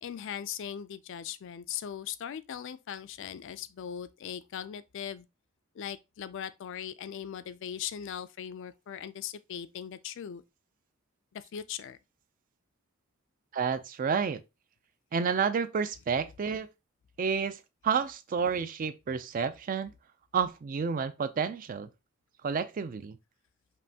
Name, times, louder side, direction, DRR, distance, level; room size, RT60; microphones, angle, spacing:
voice 1, 0.0-5.3 5.7-10.4 11.3-12.0, left 9 dB, 55° left, 0.3 m, -39 dB
voice 2, 13.5-14.4 15.1-16.7 17.2-19.9 20.3-21.9 22.4-23.2, right 6 dB, 40° right, 0.3 m, -30 dB
5.3 x 2.6 x 2.7 m
head